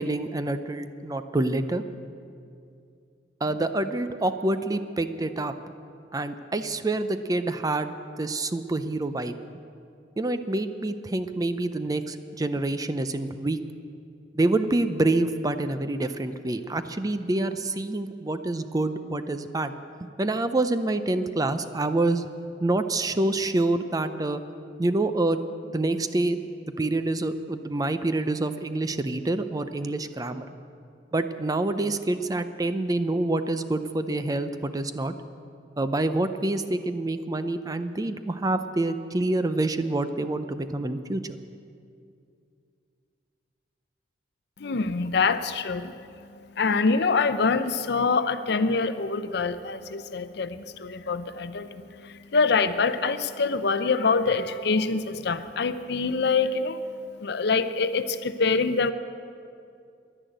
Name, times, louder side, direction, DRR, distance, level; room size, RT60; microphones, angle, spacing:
voice 1, 0.0-1.8 3.4-5.5 6.1-9.3 10.2-13.6 14.3-19.7 20.0-22.2 22.6-24.4 24.8-25.4 25.6-30.5 31.1-35.1 35.8-41.2, right 2 dB, 20° right, 10 dB, 0.5 m, -27 dB
voice 2, 44.6-58.9, left 4 dB, 65° left, 11 dB, 0.6 m, -25 dB
11.0 x 10.5 x 9.0 m, 2.4 s
head